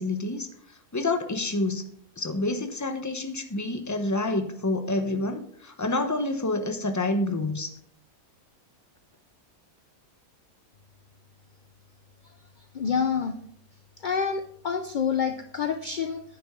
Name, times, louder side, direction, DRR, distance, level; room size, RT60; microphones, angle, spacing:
voice 1, 0.0-1.8 2.2-7.8, left 2 dB, 15° left, 6 dB, 0.8 m, -28 dB
voice 2, 12.7-13.3 14.0-16.2, left 6 dB, 55° left, 7 dB, 0.5 m, -27 dB
11.0 x 9.5 x 3.7 m, 0.67 s
omnidirectional pair, 1.5 m